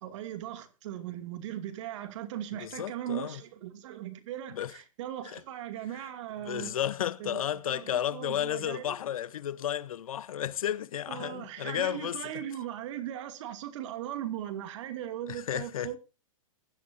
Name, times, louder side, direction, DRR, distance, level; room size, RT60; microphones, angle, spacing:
voice 1, 0.0-6.7 7.2-9.0 11.1-16.0, right 11 dB, 60° right, 2.4 m, -38 dB
voice 2, 2.5-3.4 4.5-4.8 5.3-5.4 6.4-12.3 15.3-16.0, left 10 dB, 75° left, 0.8 m, -33 dB
22.5 x 11.0 x 2.7 m
hypercardioid pair, 120°, 18 cm